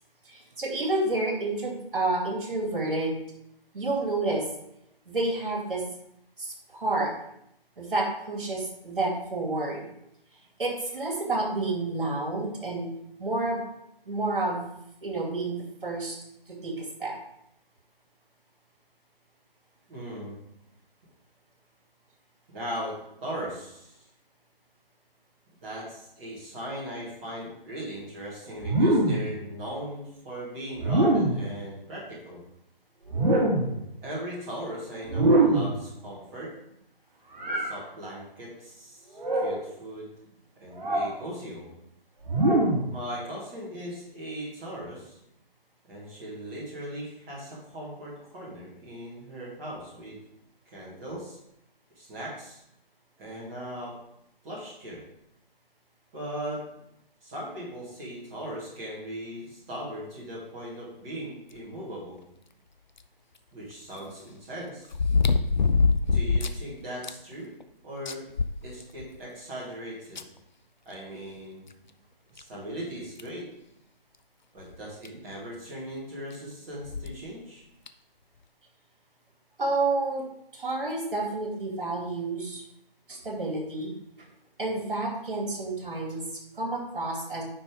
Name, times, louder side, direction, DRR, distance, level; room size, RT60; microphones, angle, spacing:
voice 1, 0.3-3.2 3.7-4.4 5.1-5.8 6.4-7.1 7.8-9.8 10.6-12.9 13.2-13.6 14.1-14.7 15.0-16.2 16.6-17.1 79.6-80.3 80.5-82.6 83.1-83.9 84.6-86.2 86.6-87.4, right 2 dB, 60° right, 0 dB, 2.6 m, -29 dB
voice 2, 19.9-20.4 22.5-23.0 23.2-24.1 25.6-32.4 34.0-36.5 37.5-40.1 40.6-41.7 42.9-45.2 45.9-50.2 50.7-51.4 51.9-52.6 53.2-53.9 54.4-55.0 56.1-56.6 57.2-62.2 63.5-64.9 66.1-67.5 67.8-68.2 68.6-70.2 70.9-71.6 72.3-73.5 74.5-77.6, equal, 15° right, -8 dB, 1.8 m, -38 dB
sound 1, 28.6-29.3 30.8-31.5 33.1-33.8 35.1-35.8 37.4-37.7 39.1-39.6 40.8-41.1 42.2-42.9, right 2 dB, 45° right, 2.6 m, -23 dB
sound 2, 63.0-63.1 64.9-66.6 67.0-67.1 67.6-67.7 68.1-69.2 70.2-70.3 71.7-71.8 72.4-72.5 73.2-73.4 74.7-74.8 75.0-75.1 76.8-77.2 77.9-78.0, left 4 dB, 50° left, 0.6 m, -24 dB
9.8 x 5.4 x 3.6 m, 0.78 s
figure-of-eight pair, 150°, 29 cm